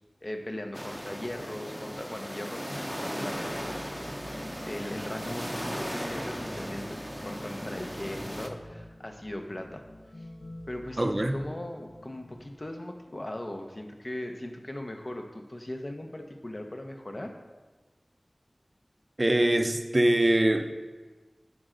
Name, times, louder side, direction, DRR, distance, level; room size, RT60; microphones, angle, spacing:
voice 1, 0.2-4.3 4.7-7.0 7.2-9.8 10.2-10.3 10.7-17.3, left 1 dB, 45° left, 4 dB, 0.8 m, -39 dB
sound 1, 0.7-8.5, equal, 5° right, 0.7 m, -37 dB
sound 2, 3.3-12.9, left 1 dB, 75° left, 1.5 m, -47 dB
voice 2, 11.0-11.4 19.2-20.7, right 1 dB, 40° right, 7 dB, 0.5 m, -23 dB
9.5 x 4.3 x 3.8 m, 1.3 s
wide cardioid pair, 50°, 0 cm